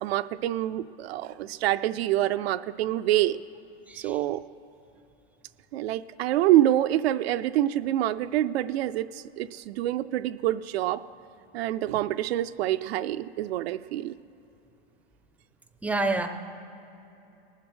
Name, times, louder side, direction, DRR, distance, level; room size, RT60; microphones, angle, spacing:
voice 1, 0.0-3.4 3.9-4.4 5.7-11.0 11.5-14.2, right 13 dB, 70° right, 10 dB, 0.5 m, -26 dB
voice 2, 15.8-16.3, right 2 dB, 5° right, 7 dB, 0.4 m, -27 dB
19.0 x 7.5 x 6.2 m, 2.9 s
supercardioid pair, 145°, 33 cm